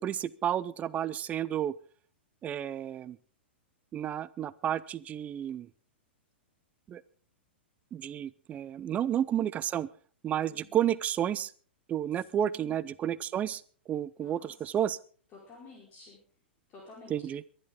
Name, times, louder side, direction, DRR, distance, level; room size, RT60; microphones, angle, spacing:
voice 1, 0.0-1.7 2.4-3.2 3.9-5.7 6.9-7.0 7.9-9.9 10.2-11.5 11.9-15.0 17.1-17.4, right 10 dB, 25° right, 20 dB, 0.6 m, -31 dB
voice 2, 10.5-10.8 12.4-12.9 14.2-14.5 14.8-14.9 15.3-16.2 16.7-17.1, left 4 dB, 30° left, -2 dB, 4.7 m, -52 dB
23.0 x 11.5 x 3.8 m, 0.43 s
figure-of-eight pair, 105°, 6 cm